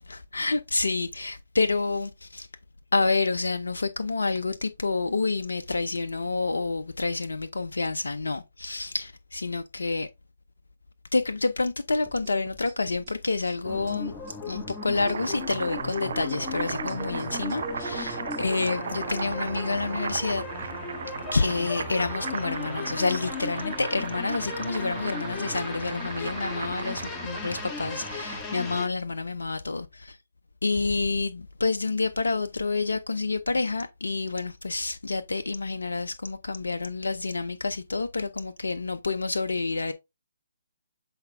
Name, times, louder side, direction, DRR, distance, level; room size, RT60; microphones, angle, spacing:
voice 1, 0.1-2.5 2.9-10.1 11.1-14.1 14.5-20.5 21.3-30.2 30.6-39.9, left 3 dB, 80° left, 0.6 m, -28 dB
sound 1, 12.1-18.4, right 6 dB, 35° right, 1.5 m, -50 dB
sound 2, 13.6-28.9, left 4 dB, 15° left, 1.3 m, -37 dB
Boiling, 14.7-28.6, right 6 dB, 60° right, 0.6 m, -36 dB
7.9 x 4.3 x 3.3 m
figure-of-eight pair, 140°, 0 cm